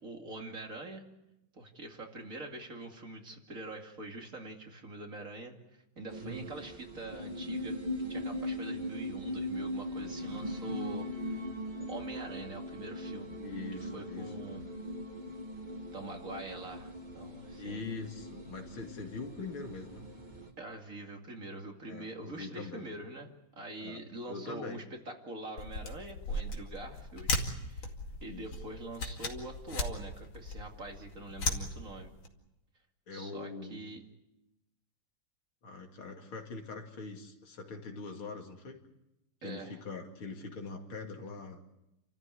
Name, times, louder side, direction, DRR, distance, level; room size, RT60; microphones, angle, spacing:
voice 1, 0.0-1.0 1.5-5.5 6.0-7.8 8.1-11.4 11.9-13.4 13.8-14.6 15.9-17.9 20.6-23.3 23.5-27.9 28.2-32.1 33.1-34.0 39.4-39.8, right 2 dB, 40° right, 2 dB, 2.8 m, -44 dB
sound 1, 6.1-20.5, equal, 20° right, 2.3 m, -40 dB
voice 2, 13.4-14.3 17.6-20.1 21.9-22.9 23.8-24.0 24.3-24.8 28.3-28.6 33.1-33.8 35.6-38.8 39.4-41.6, left 3 dB, 85° left, 3 dB, 3.3 m, -43 dB
sound 2, 25.6-32.3, left 2 dB, 70° left, 3.1 m, -37 dB
29.5 x 14.0 x 9.8 m, 0.93 s
omnidirectional pair, 2.2 m